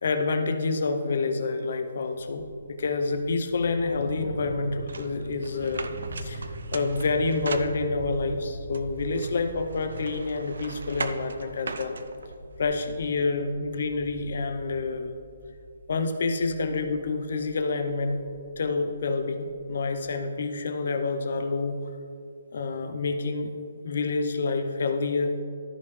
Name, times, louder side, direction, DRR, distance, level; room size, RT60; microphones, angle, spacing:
voice 1, 0.0-5.9 6.2-6.4 6.7-12.0 12.6-15.1 15.9-18.2 18.6-21.8 22.5-23.5 23.8-25.4, left 3 dB, 45° left, 6 dB, 0.7 m, -28 dB
sound 1, 2.3-20.0, right 1 dB, 50° right, 1.2 m, -42 dB
sound 2, 4.9-8.2 8.7-12.6, right 4 dB, 65° right, 0.6 m, -39 dB
13.5 x 5.4 x 3.2 m, 2.5 s
hypercardioid pair, 180°, 0 cm